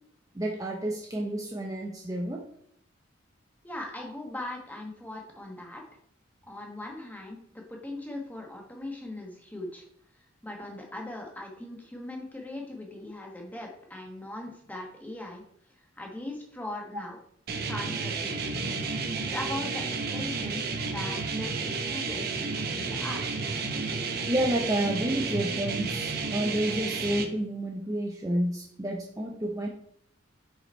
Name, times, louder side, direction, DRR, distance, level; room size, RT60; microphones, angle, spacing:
voice 1, 0.3-2.4 24.3-29.7, right 1 dB, 15° right, -1 dB, 0.6 m, -30 dB
voice 2, 3.6-5.8 6.5-9.8 10.4-15.4 15.8-17.2 17.7-18.5 19.3-23.3, left 1 dB, 10° left, 0 dB, 1.1 m, -39 dB
sound 1, 17.5-27.3, right 4 dB, 50° right, 0.7 m, -31 dB
5.0 x 4.9 x 4.4 m, 0.67 s
head